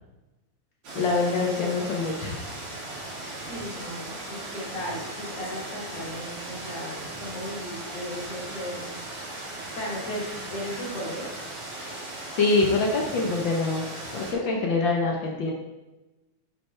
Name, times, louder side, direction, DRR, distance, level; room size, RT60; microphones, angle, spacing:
sound 1, 0.8-14.3, right 2 dB, 50° right, 3.1 m, -38 dB
voice 1, 0.9-2.4 11.8-12.0 12.3-15.5, left 3 dB, 80° left, 0 dB, 1.0 m, -25 dB
voice 2, 3.5-8.9 9.8-11.3, equal, 55° left, -5 dB, 3.6 m, -36 dB
9.5 x 7.6 x 3.4 m, 1.0 s
omnidirectional pair, 3.6 m